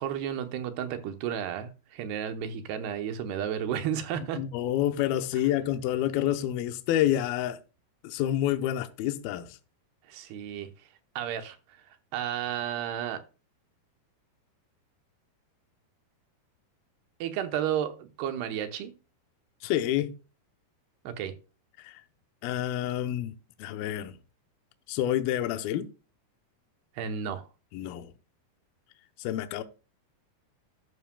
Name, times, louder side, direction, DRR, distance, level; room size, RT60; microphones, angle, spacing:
voice 1, 0.0-4.4 10.1-10.7 11.2-11.6 12.1-13.2 17.2-19.0 21.0-21.4 27.0-27.5, right 9 dB, 75° right, 2.9 m, -32 dB
voice 2, 4.2-7.6 8.0-9.6 19.6-20.1 21.8-22.0 22.4-23.3 23.6-24.1 24.9-25.9 27.7-28.1 29.2-29.6, left 12 dB, 75° left, 2.4 m, -28 dB
12.0 x 11.0 x 2.2 m
omnidirectional pair, 4.8 m